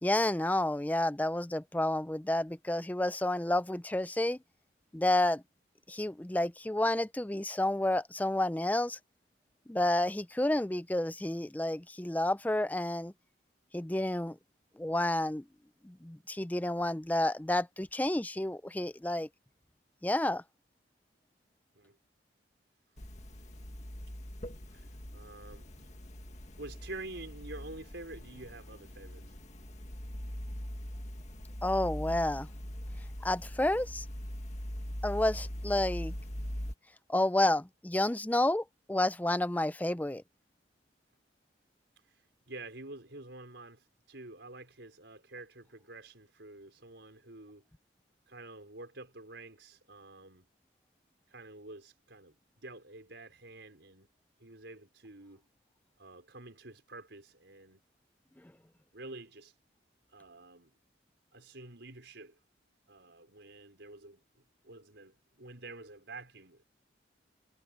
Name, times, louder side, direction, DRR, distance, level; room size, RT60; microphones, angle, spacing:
voice 1, 0.0-4.4 4.9-5.4 5.9-9.0 9.7-13.1 13.7-14.4 14.8-15.4 15.8-19.3 20.0-20.4 31.6-32.5 33.2-34.0 35.0-36.1 37.1-40.2, left 1 dB, 10° left, 0.4 m, -30 dB
sound 1, 23.0-36.7, equal, 40° left, 1.9 m, -41 dB
voice 2, 24.7-25.9 26.6-29.3 42.1-47.6 48.3-50.4 51.3-52.3 52.6-54.1 54.4-55.4 56.0-57.8 58.9-59.5 60.1-60.7 61.3-62.4 62.9-64.2 64.6-66.6, right 2 dB, 70° right, 5.1 m, -48 dB
head